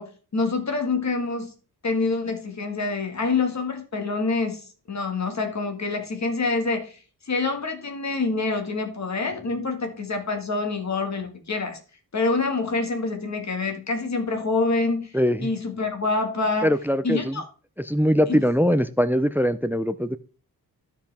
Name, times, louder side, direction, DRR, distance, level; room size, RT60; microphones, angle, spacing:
voice 1, 0.0-1.5 1.8-4.6 4.9-7.0 7.3-11.8 12.1-15.1 15.4-16.7 17.0-17.4 18.3-18.4, left 3 dB, 45° left, 5 dB, 1.8 m, -26 dB
voice 2, 15.1-15.5 16.6-17.4 17.8-20.2, equal, 5° right, 14 dB, 0.3 m, -22 dB
13.0 x 4.9 x 3.4 m, 0.37 s
wide cardioid pair, 120°, 38 cm